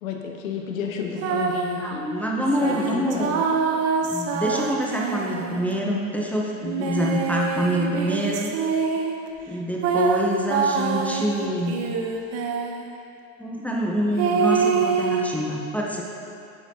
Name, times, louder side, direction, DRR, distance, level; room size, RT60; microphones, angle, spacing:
voice 1, 0.0-2.0 2.4-3.3, left 6 dB, 75° left, 2 dB, 1.1 m, -31 dB
sound 1, 1.2-1.8 2.6-5.8 6.6-9.2 9.8-12.9 14.2-15.3, right 6 dB, 40° right, 0.7 m, -25 dB
voice 2, 1.8-3.4 4.0-8.5 9.5-11.8 13.4-16.0, equal, 5° left, -3 dB, 0.8 m, -26 dB
9.2 x 7.5 x 2.8 m, 2.7 s
hypercardioid pair, 100°, 41 cm